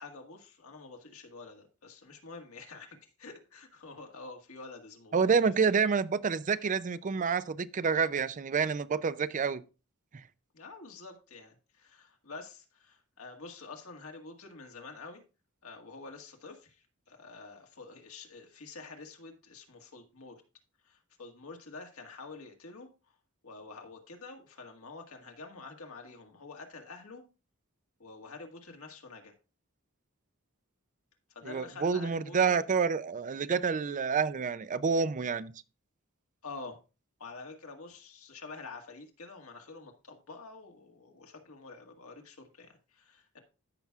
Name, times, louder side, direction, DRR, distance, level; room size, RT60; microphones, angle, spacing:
voice 1, 0.0-5.7 10.5-15.2 15.6-20.4 20.8-22.9 23.4-27.2 28.0-29.3 31.3-32.6 36.4-36.8 37.2-43.4, left 3 dB, 80° left, 1.8 m, -48 dB
voice 2, 5.1-9.6 31.4-35.5, right 5 dB, 35° right, 0.4 m, -28 dB
13.5 x 5.9 x 2.4 m
head